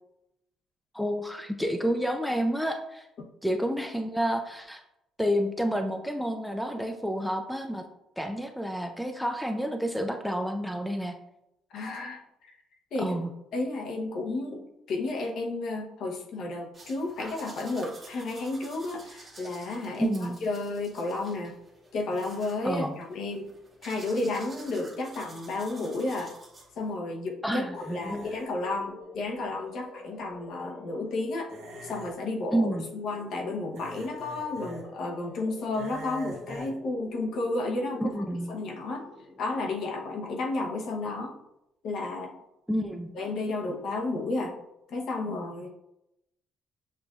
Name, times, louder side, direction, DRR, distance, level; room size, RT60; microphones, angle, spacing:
voice 1, 0.9-3.1 3.4-4.8 5.2-7.8 8.2-11.1 13.0-13.3 20.0-20.4 22.6-22.9 27.4-28.3 32.5-32.9 38.0-38.5 42.7-43.1, equal, ahead, 5 dB, 0.4 m, -29 dB
voice 2, 11.7-12.2 12.5-12.6 12.9-13.2 13.5-21.5 21.9-23.5 23.8-26.3 26.8-31.5 31.8-38.1 38.5-39.1 39.4-41.4 41.8-42.3 43.1-44.6 44.9-45.7, left 2 dB, 65° left, 1 dB, 0.8 m, -32 dB
sound 1, 16.7-27.0, right 2 dB, 30° right, 1.4 m, -50 dB
sound 2, 27.5-40.3, left 2 dB, 30° left, 0.9 m, -46 dB
sound 3, 27.7-28.6 31.5-32.1 33.7-34.8 35.7-36.7, right 1 dB, 90° right, 1.5 m, -44 dB
6.7 x 2.5 x 2.3 m, 0.84 s
cardioid pair, 110°, 0 cm